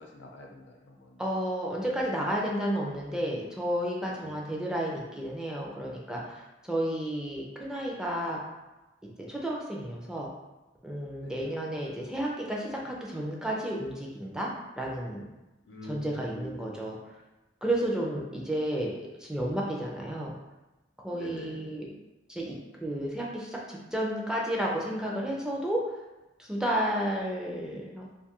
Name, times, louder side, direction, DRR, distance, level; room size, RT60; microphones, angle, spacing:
voice 1, 0.0-1.2 4.2-4.4 11.2-11.5 15.6-16.8 21.1-21.7, left 1 dB, 90° left, 0 dB, 0.5 m, -45 dB
voice 2, 1.2-8.4 9.0-10.3 10.8-14.5 14.8-15.3 15.9-17.2 17.6-18.9 19.2-20.3 21.0-21.9 22.3-22.5 22.8-26.0 26.4-28.2, right 1 dB, 5° right, -3 dB, 0.4 m, -32 dB
2.5 x 2.3 x 2.8 m, 1.0 s
head